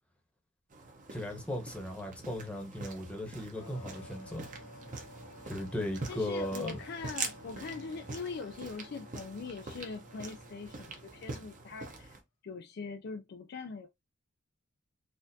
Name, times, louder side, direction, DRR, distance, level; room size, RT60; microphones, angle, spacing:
sound 1, 0.7-12.2, right 3 dB, 40° right, 0.8 m, -44 dB
voice 1, 1.1-4.5 5.5-6.8, left 1 dB, 5° left, 0.9 m, -37 dB
sound 2, 3.6-12.0, left 1 dB, 80° left, 1.8 m, -54 dB
voice 2, 6.1-12.2 12.4-13.9, left 4 dB, 50° left, 0.4 m, -42 dB
4.2 x 2.5 x 2.6 m
head